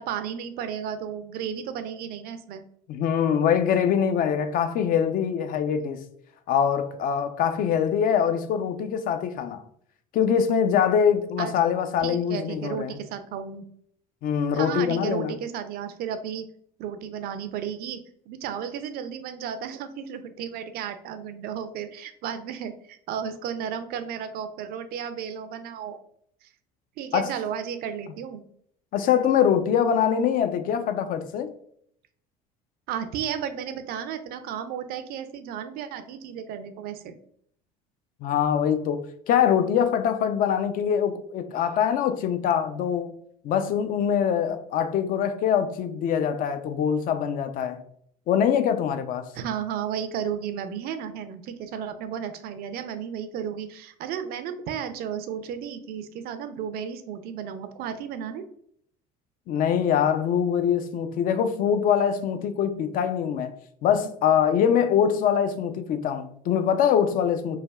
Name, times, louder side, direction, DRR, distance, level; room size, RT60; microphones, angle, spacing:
voice 1, 0.0-2.6 11.4-11.5 12.0-13.6 14.5-16.5 16.8-26.0 26.4-26.5 27.0-28.4 32.9-37.1 49.3-58.4, right 8 dB, 55° right, 0.4 m, -33 dB
voice 2, 2.9-6.0 6.5-9.6 10.1-13.0 14.2-15.3 27.1-27.3 28.9-31.5 38.2-43.1 43.4-47.8 48.3-49.3 59.5-63.5 63.8-67.6, left 8 dB, 50° left, 0.4 m, -23 dB
3.3 x 2.2 x 2.2 m
hypercardioid pair, 80°, 19 cm